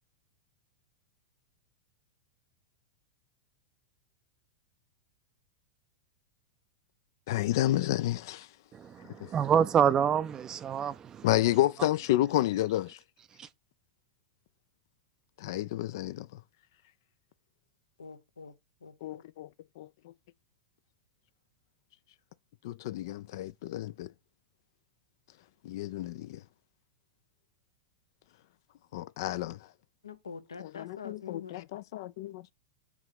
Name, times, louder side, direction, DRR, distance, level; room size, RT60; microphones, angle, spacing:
voice 1, 7.3-8.5 9.2-9.3 11.2-13.0 15.4-16.4 19.0-19.5 19.8-19.9 22.6-24.1 25.6-26.4 28.9-29.6 30.6-32.5, left 14 dB, 60° left, 0.3 m, -30 dB
voice 2, 8.7-11.3 13.4-13.5, right 8 dB, 25° right, 0.4 m, -27 dB
voice 3, 18.0-18.6 18.8-19.2 30.0-31.6, left 6 dB, 80° left, 0.8 m, -45 dB
6.1 x 3.8 x 5.8 m
figure-of-eight pair, 95°, 2 cm